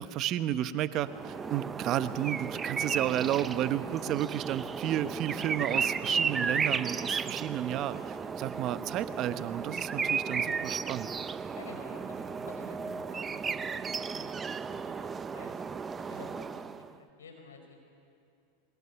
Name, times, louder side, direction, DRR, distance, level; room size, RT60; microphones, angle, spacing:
voice 1, 0.0-11.1, right 12 dB, 45° right, 13 dB, 1.0 m, -32 dB
sound 1, 1.0-16.9, right 5 dB, 20° right, 0.7 m, -34 dB
voice 2, 11.5-15.6 16.1-16.6 16.9-17.7, left 4 dB, 85° left, 3 dB, 5.2 m, -51 dB
26.5 x 21.5 x 7.0 m, 2.5 s
hypercardioid pair, 105°, 0 cm